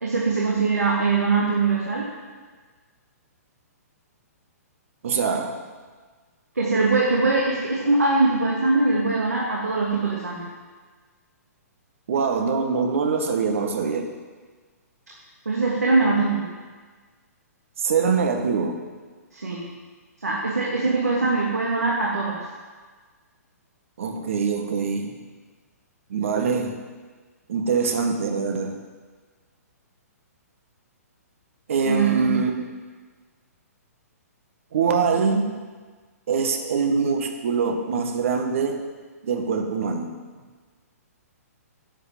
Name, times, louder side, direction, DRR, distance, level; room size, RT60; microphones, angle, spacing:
voice 1, 0.0-2.0 6.5-10.4 15.4-16.4 19.3-19.6 20.2-22.4 31.8-32.5, right 3 dB, 75° right, -4 dB, 2.7 m, -22 dB
voice 2, 5.0-5.6 12.1-14.1 17.8-18.8 24.0-25.2 26.1-26.8 27.5-28.8 31.7-32.5 34.7-35.5 36.3-38.8 39.2-40.1, right 5 dB, 55° right, 4 dB, 1.8 m, -24 dB
11.0 x 8.3 x 7.6 m, 1.4 s
figure-of-eight pair, 120°, 9 cm